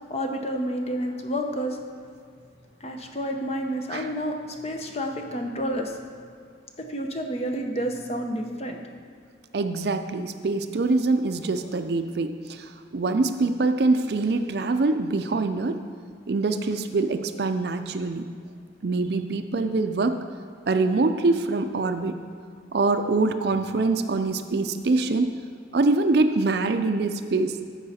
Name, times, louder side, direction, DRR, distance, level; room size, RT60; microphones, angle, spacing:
voice 1, 0.1-1.8 2.8-6.3 6.8-8.8, equal, 35° left, 3 dB, 0.7 m, -30 dB
voice 2, 9.5-15.8 16.3-18.2 18.8-20.2 20.7-22.2 22.7-25.3 25.7-27.5, right 3 dB, 60° right, 8 dB, 0.5 m, -24 dB
14.0 x 4.7 x 4.2 m, 2.3 s
head